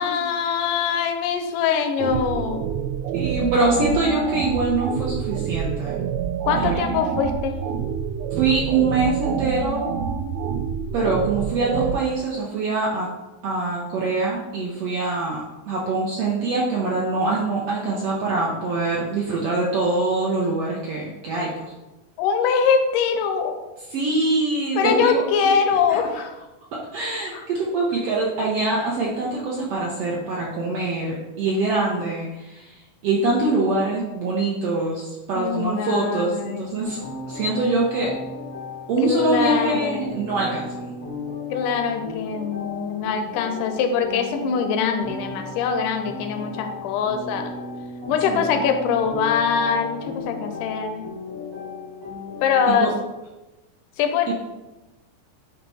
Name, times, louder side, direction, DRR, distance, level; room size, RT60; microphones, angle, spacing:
voice 1, 0.0-2.7 6.5-7.5 22.2-23.6 24.8-26.4 27.3-27.4 35.4-36.7 39.1-40.1 41.5-47.5 48.1-51.0 52.4-52.9 54.0-54.3, left 6 dB, 85° left, 6 dB, 2.1 m, -23 dB
sound 1, 2.0-12.0, right 7 dB, 85° right, 1.5 m, -27 dB
voice 2, 2.8-6.0 6.6-7.0 8.3-9.8 10.9-13.1 13.4-21.7 23.9-25.2 25.9-26.0 26.9-37.0 37.3-38.1 38.9-40.9 48.3-48.6 52.7-52.9 54.3-54.4, right 3 dB, 70° right, -4 dB, 1.5 m, -24 dB
sound 2, 36.8-52.7, left 3 dB, 20° right, 0.5 m, -35 dB
8.8 x 3.0 x 4.1 m, 1.1 s
omnidirectional pair, 3.6 m